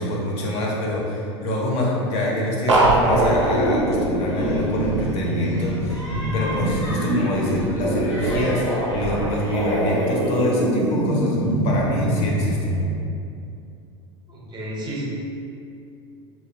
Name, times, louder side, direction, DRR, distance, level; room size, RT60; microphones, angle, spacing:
voice 1, 0.0-6.0 6.3-8.6 8.9-11.4 11.6-12.7, left 1 dB, 45° left, -3 dB, 0.5 m, -25 dB
sound 1, 2.7-12.9, right 1 dB, 85° right, 0.4 m, -22 dB
sound 2, 3.1-10.5, equal, 85° left, 0.8 m, -39 dB
voice 2, 14.3-15.0, right 1 dB, 30° right, -4 dB, 0.6 m, -32 dB
2.5 x 2.2 x 2.3 m, 2.5 s
hypercardioid pair, 85°, 15 cm